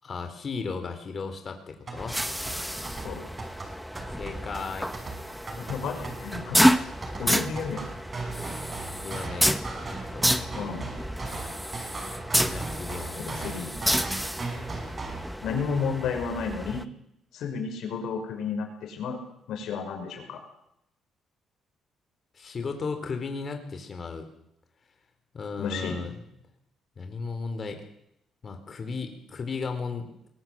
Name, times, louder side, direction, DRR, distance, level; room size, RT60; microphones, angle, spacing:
voice 1, 0.0-2.2 4.2-5.1 8.8-9.5 9.8-10.5 12.5-13.5 22.3-24.3 25.3-26.1 27.0-27.8 28.4-30.1, left 4 dB, 40° left, 6 dB, 4.1 m, -35 dB
sound 1, 1.7-15.3, right 3 dB, 35° right, 5.6 m, -38 dB
sound 2, 2.0-16.8, equal, ahead, 1.2 m, -29 dB
voice 2, 5.6-6.9 7.2-7.9 10.5-10.9 13.4-13.7 15.4-16.8 17.3-19.2 19.5-20.4 25.6-26.0, left 5 dB, 75° left, 5 dB, 6.0 m, -32 dB
21.5 x 18.0 x 7.8 m, 0.78 s
cardioid pair, 105°, 0 cm